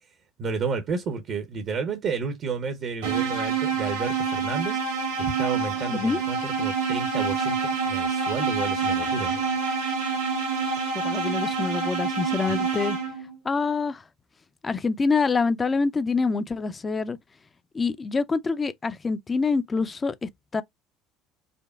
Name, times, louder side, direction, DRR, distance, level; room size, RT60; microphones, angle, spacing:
voice 1, 0.4-9.4, right 5 dB, 50° right, 0.8 m, -31 dB
sound 1, 3.0-13.4, right 5 dB, 75° right, 1.4 m, -27 dB
voice 2, 5.9-6.2 11.0-13.0 13.4-14.0 14.6-17.2 17.7-20.6, left 4 dB, 25° left, 0.5 m, -26 dB
5.1 x 2.2 x 2.3 m
hypercardioid pair, 60°, 0 cm